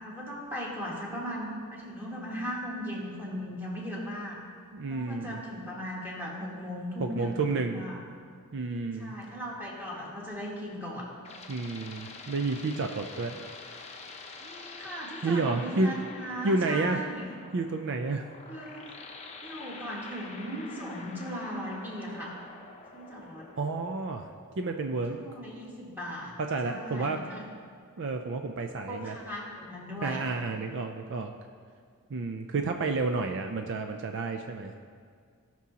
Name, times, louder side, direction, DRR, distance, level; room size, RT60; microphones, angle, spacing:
voice 1, 0.0-4.4 4.9-8.0 9.0-11.1 14.4-17.3 18.5-18.8 19.4-22.4 22.9-23.5 25.1-26.3 26.6-27.4 28.9-30.3, equal, 10° right, -5 dB, 1.9 m, -38 dB
voice 2, 4.7-5.4 7.0-7.8 8.5-9.1 11.5-13.4 15.2-15.9 16.4-17.0 17.5-18.3 23.6-24.3 24.6-25.2 26.4-27.2 28.0-29.2 30.0-31.3 32.1-34.7, right 3 dB, 55° right, 5 dB, 0.5 m, -30 dB
sound 1, 10.8-24.4, left 3 dB, 30° left, 0.7 m, -47 dB
17.5 x 6.1 x 2.9 m, 2.1 s
head